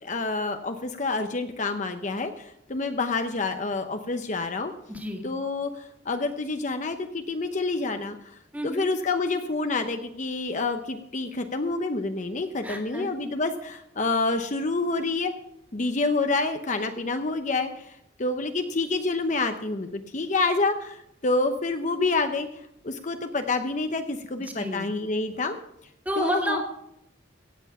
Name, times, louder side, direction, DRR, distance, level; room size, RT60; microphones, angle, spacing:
voice 1, 0.0-4.7 5.2-8.2 8.6-15.3 15.7-22.5 22.8-25.6 26.2-26.6, left 3 dB, 40° left, 7 dB, 0.8 m, -28 dB
voice 2, 4.9-5.2 8.5-8.9 12.6-13.1 24.4-24.9 26.1-26.6, equal, 10° right, 2 dB, 2.0 m, -30 dB
16.5 x 7.9 x 5.5 m, 0.79 s
head